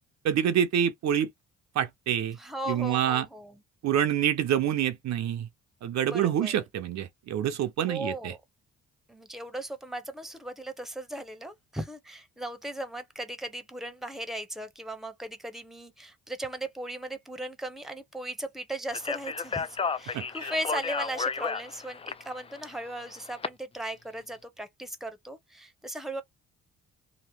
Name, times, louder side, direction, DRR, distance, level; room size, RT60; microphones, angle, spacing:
voice 1, 0.2-1.3 1.7-2.4 2.7-3.3 3.8-5.5 5.8-8.3 20.1-20.5, right 9 dB, 65° right, 0.6 m, -27 dB
voice 2, 2.4-3.6 6.0-6.6 7.9-8.4 9.1-26.2, right 1 dB, ahead, 0.8 m, -37 dB
Speech, 18.9-23.5, left 5 dB, 20° left, 0.4 m, -33 dB
2.9 x 2.1 x 3.3 m
cardioid pair, 90°, 30 cm